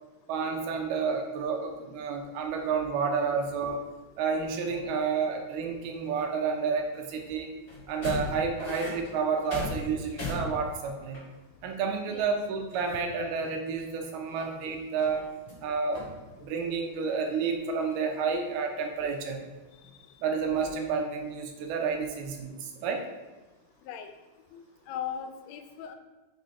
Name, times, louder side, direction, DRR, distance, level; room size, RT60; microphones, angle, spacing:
voice 1, 0.3-3.8 4.2-7.5 7.9-11.2 11.6-15.3 15.6-16.1 16.4-19.4 20.2-23.1, right 5 dB, 85° right, 3 dB, 2.7 m, -30 dB
sound 1, 3.1-3.9 4.3-5.4 5.7-7.2 7.6-11.6 12.1-12.2 12.4-13.5 13.8-15.7 15.9-16.8 17.1-18.0 18.4-19.9 20.3-20.7, left 1 dB, 30° left, 1.1 m, -40 dB
voice 2, 24.5-25.9, left 8 dB, 85° left, 7 dB, 2.4 m, -39 dB
6.0 x 3.8 x 4.1 m, 1.2 s
omnidirectional pair, 4.4 m